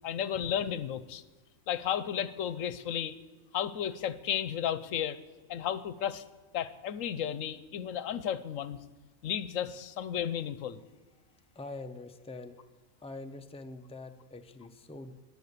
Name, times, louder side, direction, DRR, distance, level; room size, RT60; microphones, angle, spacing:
voice 1, 0.0-1.2 1.7-3.2 3.5-5.2 5.5-6.2 6.5-8.8 9.2-10.8, left 9 dB, 75° left, 15 dB, 1.0 m, -33 dB
voice 2, 11.3-12.6 13.0-15.2, left 2 dB, 10° left, 7 dB, 0.3 m, -45 dB
20.5 x 6.9 x 6.7 m, 1.3 s
omnidirectional pair, 1.4 m